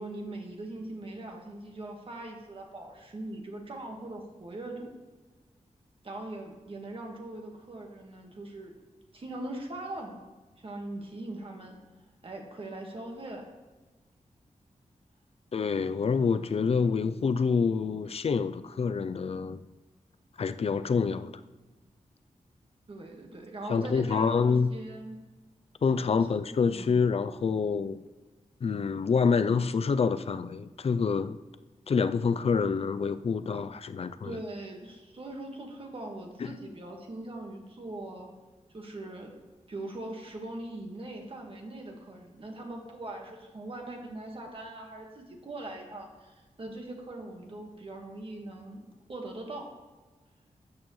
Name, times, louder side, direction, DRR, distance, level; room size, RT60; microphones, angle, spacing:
voice 1, 0.0-4.9 6.0-8.7 9.1-10.2 10.6-11.8 12.2-13.4 22.9-25.2 26.0-26.2 26.7-27.0 34.2-38.3 38.7-39.3 39.7-48.8 49.1-49.6, right 2 dB, 45° right, 1.6 m, -41 dB
voice 2, 15.5-19.6 20.4-21.3 23.7-24.7 25.8-28.0 28.6-31.4 31.9-34.4 36.4-36.5, left 5 dB, 50° left, 0.4 m, -27 dB
12.5 x 8.4 x 3.2 m
wide cardioid pair, 150°, 13 cm